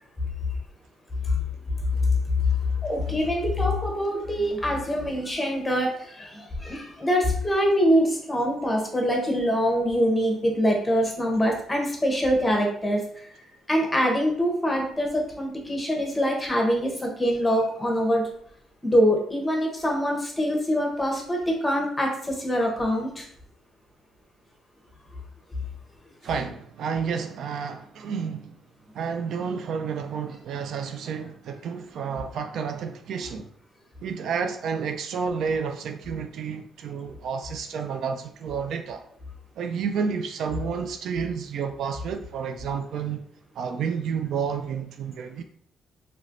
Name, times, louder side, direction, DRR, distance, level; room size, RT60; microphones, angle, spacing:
voice 1, 2.0-18.3 18.8-23.3, equal, 15° left, 0.9 m, -24 dB
voice 2, 26.2-28.6 28.9-33.5 34.0-39.0 39.6-43.2 43.5-45.4, right 6 dB, 70° right, 0.3 m, -30 dB
3.2 x 2.9 x 2.5 m
cardioid pair, 90°, 0 cm